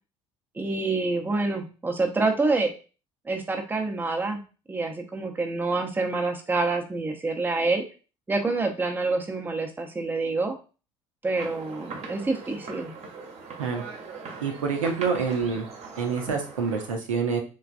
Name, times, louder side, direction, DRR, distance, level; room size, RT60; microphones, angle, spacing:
voice 1, 0.5-2.7 3.3-4.4 4.7-7.8 8.3-10.6 11.2-12.9, right 3 dB, 10° right, 3 dB, 0.6 m, -27 dB
sound 1, 11.3-16.9, right 4 dB, 40° right, 0.9 m, -40 dB
voice 2, 14.4-15.7 16.0-17.4, right 5 dB, 80° right, 3 dB, 0.6 m, -27 dB
3.2 x 2.3 x 2.4 m, 0.34 s
figure-of-eight pair, 60°, 17 cm